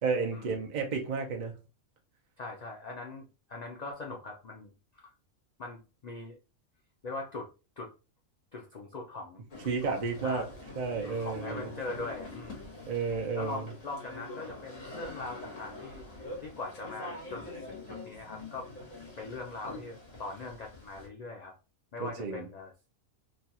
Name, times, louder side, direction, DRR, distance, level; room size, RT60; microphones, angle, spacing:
voice 1, 0.0-1.5 9.6-10.4 10.7-11.7 12.9-13.7 22.0-22.5, right 5 dB, 45° right, 0.6 m, -32 dB
voice 2, 2.4-5.1 5.6-6.4 7.0-7.5 7.8-7.9 8.5-9.4 9.8-10.5 11.0-12.8 13.4-18.7 18.9-21.5 21.9-22.7, left 3 dB, 85° left, 0.3 m, -41 dB
sound 1, 9.5-21.1, left 2 dB, 65° left, 1.5 m, -45 dB
3.2 x 2.3 x 2.7 m
omnidirectional pair, 1.4 m